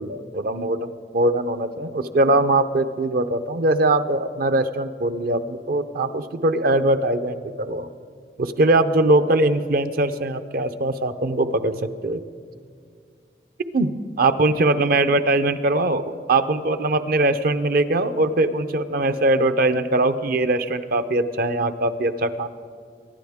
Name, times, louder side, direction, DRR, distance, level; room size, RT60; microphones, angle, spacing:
voice 1, 0.0-7.9 8.4-11.7 12.0-12.2 13.7-13.9 14.2-16.0 16.3-22.5, right 2 dB, 55° right, 11 dB, 0.6 m, -21 dB
23.5 x 10.5 x 3.5 m, 2.1 s
head